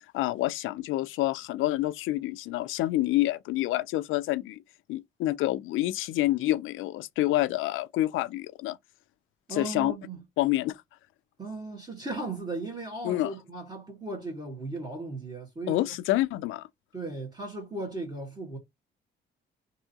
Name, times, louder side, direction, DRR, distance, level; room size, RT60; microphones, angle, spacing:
voice 1, 0.1-4.6 4.9-8.8 9.6-9.9 10.4-10.8 13.0-13.3 15.7-16.7, left 16 dB, 85° left, 0.4 m, -28 dB
voice 2, 9.5-10.2 11.4-15.9 16.9-18.6, right 2 dB, 20° right, 1.7 m, -36 dB
3.5 x 2.7 x 2.8 m
cardioid pair, 90°, 20 cm